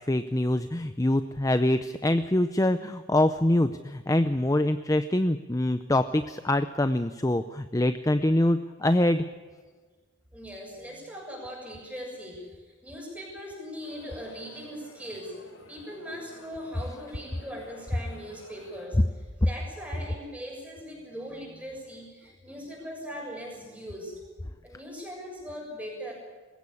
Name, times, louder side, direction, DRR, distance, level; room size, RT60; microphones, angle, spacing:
voice 1, 0.1-9.2, left 1 dB, 15° left, 10 dB, 0.6 m, -24 dB
voice 2, 10.3-15.4 15.7-19.0 19.4-26.1, equal, 5° right, -1 dB, 6.8 m, -40 dB
sound 1, 13.8-18.9, left 2 dB, 85° left, 4.7 m, -52 dB
21.0 x 16.5 x 8.6 m, 1.5 s
head